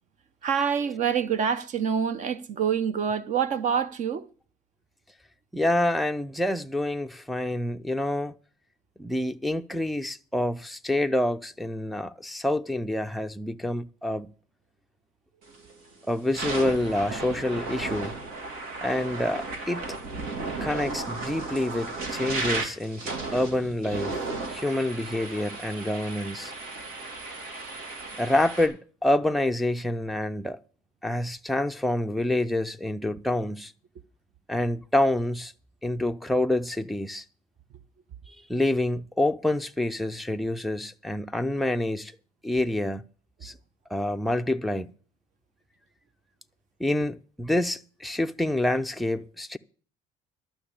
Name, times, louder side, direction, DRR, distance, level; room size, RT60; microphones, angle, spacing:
voice 1, 0.4-4.3, right 7 dB, 50° right, 0.9 m, -26 dB
voice 2, 5.5-8.3 9.0-14.3 16.1-18.2 18.8-19.9 20.6-24.2 24.5-26.5 28.2-30.6 31.0-33.7 34.5-35.5 35.8-37.2 38.3-42.1 42.4-43.0 43.4-43.6 43.9-44.9 46.8-49.6, left 1 dB, ahead, 0.4 m, -27 dB
sound 1, 15.5-15.7 16.2-28.7, right 3 dB, 80° right, 3.0 m, -34 dB
12.0 x 6.1 x 8.7 m
cardioid pair, 130°, 16 cm